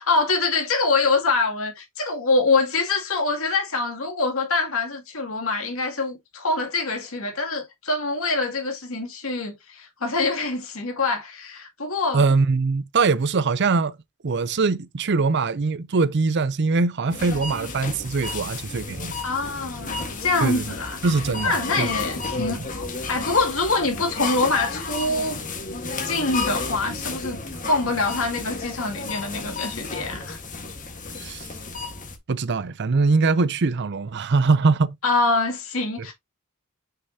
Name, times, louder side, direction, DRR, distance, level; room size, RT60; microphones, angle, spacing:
voice 1, 0.1-12.2 19.2-21.0 21.4-25.4 26.0-30.4 35.0-36.1, left 3 dB, 65° left, 2.5 m, -25 dB
voice 2, 12.1-14.0 14.2-19.2 20.4-20.7 21.0-21.9 22.4-22.7 31.2-31.5 32.3-35.0, right 4 dB, 50° right, 0.5 m, -22 dB
sound 1, 17.1-32.2, left 4 dB, 35° left, 1.5 m, -32 dB
6.5 x 5.8 x 2.8 m
head